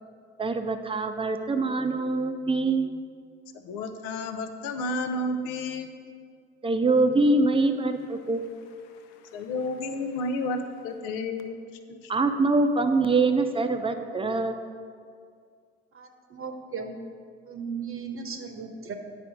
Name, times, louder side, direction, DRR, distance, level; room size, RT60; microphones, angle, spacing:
voice 1, 0.4-2.9 6.6-8.5 12.1-14.6, right 3 dB, 15° right, 7 dB, 0.7 m, -24 dB
voice 2, 3.6-5.9 9.3-11.6, left 2 dB, 65° left, 7 dB, 0.7 m, -31 dB
voice 3, 15.9-17.0 17.4-18.9, right 5 dB, 40° right, 4 dB, 0.9 m, -36 dB
9.6 x 4.9 x 5.1 m, 2.1 s
figure-of-eight pair, 50°, 34 cm